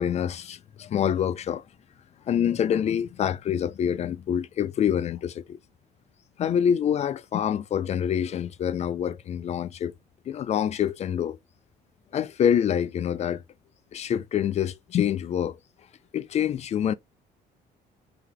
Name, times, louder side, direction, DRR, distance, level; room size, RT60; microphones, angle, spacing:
voice 1, 0.0-1.6 2.3-5.6 6.4-9.9 10.3-11.4 12.1-13.4 13.9-15.6 16.1-16.9, left 9 dB, 40° left, 0.4 m, -26 dB
3.8 x 2.8 x 3.2 m
cardioid pair, 110°, 17 cm